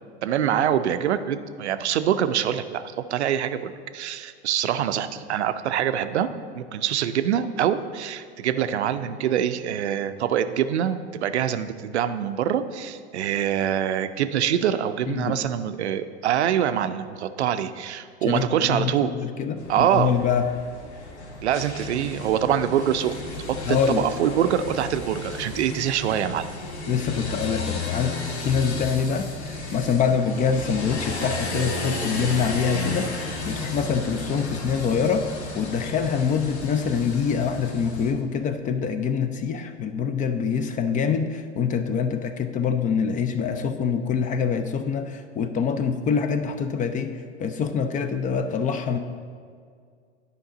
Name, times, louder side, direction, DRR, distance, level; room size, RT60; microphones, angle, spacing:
voice 1, 0.2-6.3 6.5-19.1 19.7-20.1 21.4-23.2 23.5-26.5, right 9 dB, 80° right, 11 dB, 0.5 m, -24 dB
voice 2, 15.1-15.4 18.2-20.5 23.7-24.1 26.9-35.3 35.6-49.0, left 6 dB, 25° left, 9 dB, 0.4 m, -25 dB
sound 1, 19.6-38.1, left 2 dB, 80° left, 1.0 m, -33 dB
10.0 x 5.2 x 3.9 m, 2.1 s
figure-of-eight pair, 85°, 33 cm